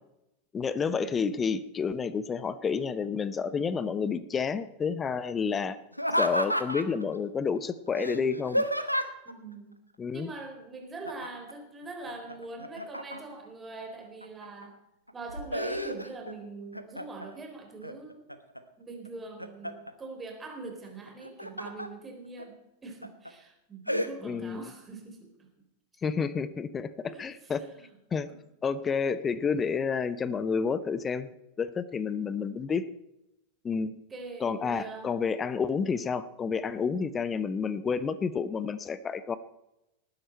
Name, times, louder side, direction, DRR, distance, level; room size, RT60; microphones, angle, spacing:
voice 1, 0.5-5.8 6.2-8.6 10.0-10.3 24.2-24.7 26.0-27.6 28.1-28.3 28.6-31.3 31.6-32.8 33.6-34.0 34.4-39.4, left 5 dB, 20° left, 16 dB, 0.8 m, -30 dB
Laughter, 5.9-7.0 7.9-9.3 11.0-11.5 11.8-13.4 14.0-14.6 15.1-16.3 16.7-17.3 17.8-18.6 19.0-19.9 21.1-21.9 22.4-22.5 23.0-23.3 23.9-24.1, equal, 90° left, 1.0 m, -31 dB
voice 2, 9.3-9.8 10.1-14.8 15.1-18.2 18.8-25.3 27.0-27.3 27.6-27.9 28.3-28.4 32.2-32.4 34.1-35.1, right 3 dB, 15° right, 3 dB, 3.8 m, -43 dB
19.0 x 10.0 x 4.4 m, 0.90 s
figure-of-eight pair, 90°, 0 cm